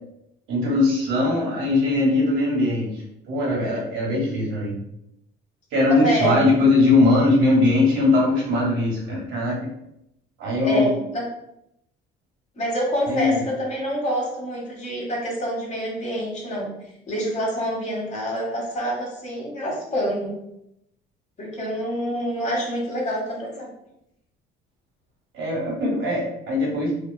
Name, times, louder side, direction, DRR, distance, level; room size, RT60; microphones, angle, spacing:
voice 1, 0.5-2.9 3.2-4.7 5.7-9.7 10.4-10.9 13.1-13.4 25.3-26.9, left 2 dB, 80° right, -3 dB, 1.2 m, -20 dB
voice 2, 6.0-6.5 10.6-11.2 12.5-16.7 17.1-20.3 21.4-23.7, equal, 35° left, -3 dB, 1.1 m, -26 dB
2.7 x 2.3 x 2.3 m, 0.79 s
cardioid pair, 105°, 20 cm